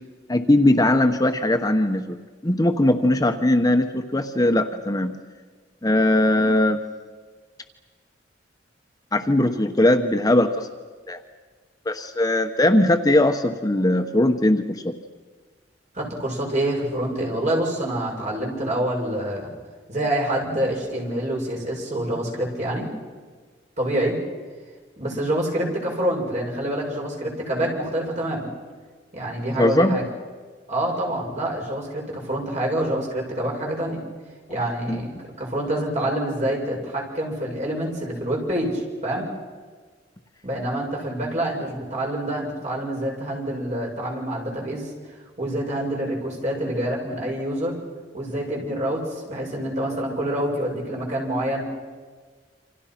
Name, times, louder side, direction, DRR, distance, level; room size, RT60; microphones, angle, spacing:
voice 1, 0.3-2.2 2.4-5.2 5.8-6.8 9.1-10.7 11.1-11.2 11.9-14.9 29.6-30.0 34.9-35.0, left 1 dB, 20° left, 6 dB, 1.1 m, -20 dB
voice 2, 16.0-19.5 19.9-22.9 23.8-24.2 25.0-28.5 29.1-30.0 30.7-34.0 34.5-35.1 35.4-39.3 40.4-44.9 45.4-47.8 48.1-51.6, right 1 dB, 40° right, -1 dB, 7.1 m, -26 dB
28.5 x 26.5 x 5.9 m, 1.5 s
head